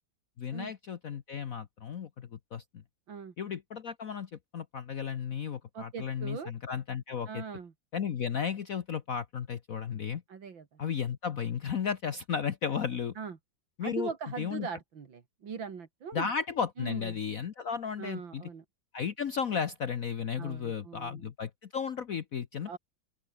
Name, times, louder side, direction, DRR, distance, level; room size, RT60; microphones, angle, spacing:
voice 1, 0.4-2.6 3.4-7.4 7.9-10.2 10.8-13.1 13.8-14.1 14.4-14.7 16.1-18.4 18.9-22.8, left 7 dB, 50° left, 1.3 m, -34 dB
voice 2, 5.7-6.5 7.3-7.7 10.3-10.8 13.2-13.4 13.8-16.3 16.8-17.2 18.0-18.6 20.4-21.3 22.7-22.8, right 6 dB, 75° right, 3.0 m, -40 dB
open air
omnidirectional pair, 2.1 m